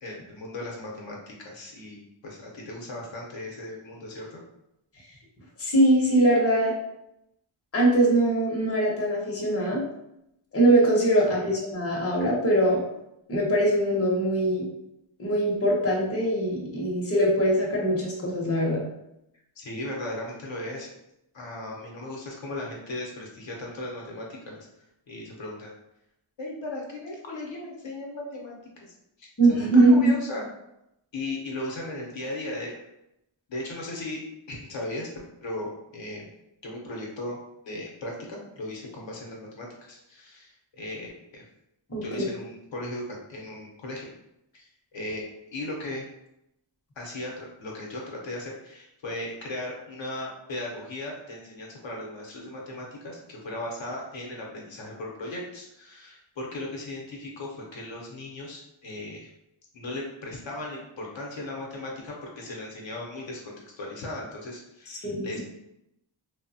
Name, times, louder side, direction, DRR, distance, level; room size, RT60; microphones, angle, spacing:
voice 1, 0.0-4.4 11.3-11.5 19.6-20.9 21.3-24.7 25.1-25.7 26.4-28.6 29.2-30.4 31.1-32.8 33.5-34.2 34.5-35.1 35.4-36.3 36.6-37.4 37.6-41.4 42.0-44.1 44.5-44.6 44.9-45.2 45.5-46.1 47.0-59.3 59.7-65.4, left 1 dB, 65° left, -2 dB, 0.7 m, -37 dB
voice 2, 5.6-6.7 7.7-9.8 10.5-12.8 13.3-14.6 15.2-18.8 29.4-30.1 41.9-42.3 65.0-65.4, right 1 dB, 30° left, -4 dB, 0.7 m, -22 dB
3.1 x 2.0 x 2.6 m, 0.83 s
wide cardioid pair, 145°, 49 cm